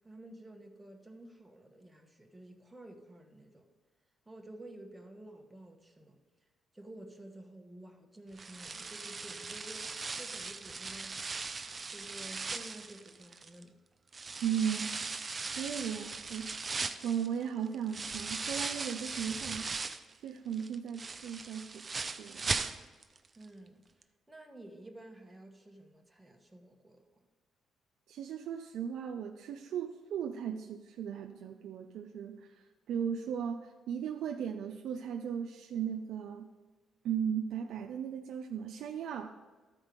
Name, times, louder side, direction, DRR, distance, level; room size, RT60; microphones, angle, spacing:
voice 1, 0.0-3.7 4.3-6.2 6.7-11.2 11.9-13.7 23.3-27.0, right 1 dB, 10° right, 3 dB, 1.1 m, -51 dB
sound 1, 8.4-13.6 14.1-20.1 20.5-23.2 23.4-23.5 24.0-24.1, right 4 dB, 30° right, 0.5 m, -39 dB
voice 2, 14.4-14.9 15.6-16.5 17.0-19.7 20.2-21.9 22.2-22.5 28.1-36.5 37.0-39.3, right 8 dB, 80° right, 4 dB, 0.5 m, -36 dB
12.5 x 4.4 x 5.2 m, 1.3 s
cardioid pair, 90°, 0 cm